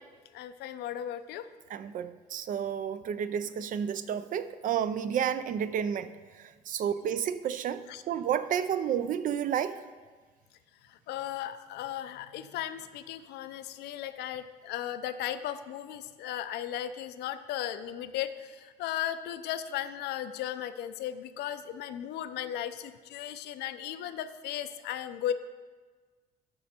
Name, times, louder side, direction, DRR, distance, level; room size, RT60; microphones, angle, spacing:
voice 1, 0.3-1.5 6.8-6.9 7.9-8.0 10.8-25.3, left 11 dB, 75° left, 0.6 m, -36 dB
voice 2, 1.7-6.1 6.4-9.7, right 8 dB, 55° right, 0.5 m, -31 dB
11.5 x 5.2 x 4.4 m
cardioid pair, 110°, 17 cm